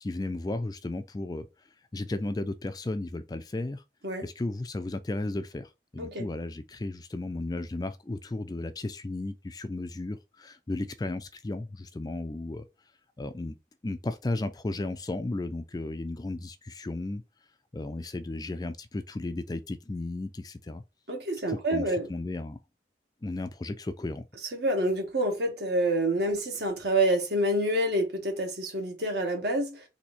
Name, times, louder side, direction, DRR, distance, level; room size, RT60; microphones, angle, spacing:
voice 1, 0.0-1.5 1.9-3.8 4.2-12.6 13.2-13.5 13.8-17.2 17.7-20.8 21.5-22.6 23.2-24.3, left 2 dB, 20° left, 0.4 m, -34 dB
voice 2, 21.1-22.1 24.5-29.9, right 1 dB, 70° right, 1.6 m, -27 dB
4.2 x 2.8 x 4.3 m
head